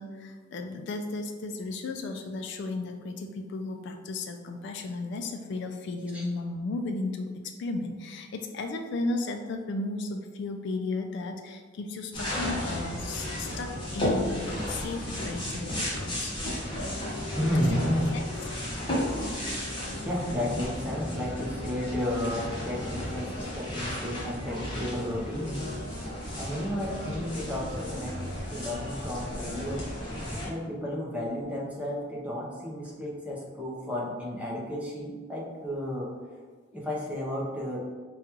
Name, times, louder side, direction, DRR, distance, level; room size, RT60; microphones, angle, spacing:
voice 1, 0.0-7.3 7.6-16.3 17.5-17.6 18.1-18.3, left 2 dB, 65° left, 5 dB, 0.3 m, -34 dB
sound 1, 12.1-30.5, left 1 dB, 25° left, 1.0 m, -34 dB
voice 2, 17.4-18.1 20.0-28.2 28.5-29.8 30.4-36.1 36.7-37.8, equal, 5° right, -4 dB, 0.7 m, -32 dB
5.0 x 2.3 x 2.9 m, 1.5 s
head